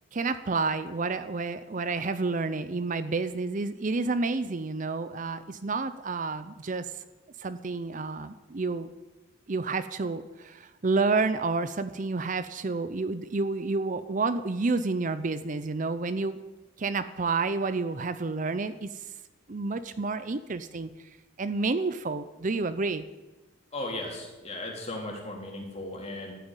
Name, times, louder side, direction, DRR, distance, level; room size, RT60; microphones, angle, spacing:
voice 1, 0.1-7.0 7.4-8.9 9.5-16.4 16.8-19.1 19.5-23.0, right 3 dB, 40° right, 12 dB, 0.5 m, -30 dB
voice 2, 23.7-26.3, left 1 dB, 30° left, 0 dB, 3.2 m, -36 dB
13.0 x 9.2 x 9.0 m, 1.1 s
head